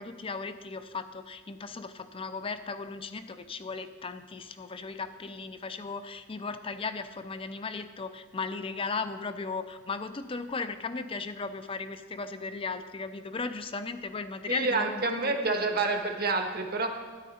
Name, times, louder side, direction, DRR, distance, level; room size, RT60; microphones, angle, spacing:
voice 1, 0.0-15.4, left 4 dB, 25° left, 11 dB, 0.5 m, -36 dB
voice 2, 14.5-16.9, right 3 dB, 50° right, 4 dB, 1.4 m, -28 dB
13.0 x 10.0 x 4.3 m, 1.4 s
head